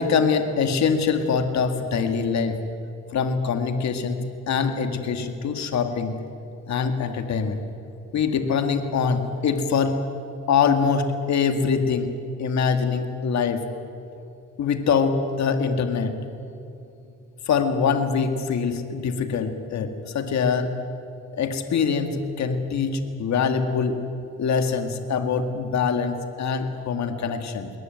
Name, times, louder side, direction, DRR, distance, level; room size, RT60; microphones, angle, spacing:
voice 1, 0.0-2.6 3.1-6.1 6.7-7.6 8.1-10.0 10.5-12.1 12.4-13.6 14.6-16.1 17.5-20.7 21.3-24.0 24.4-27.7, left 5 dB, 65° left, 7 dB, 2.1 m, -24 dB
21.0 x 18.5 x 9.3 m, 2.7 s
cardioid pair, 90°, 30 cm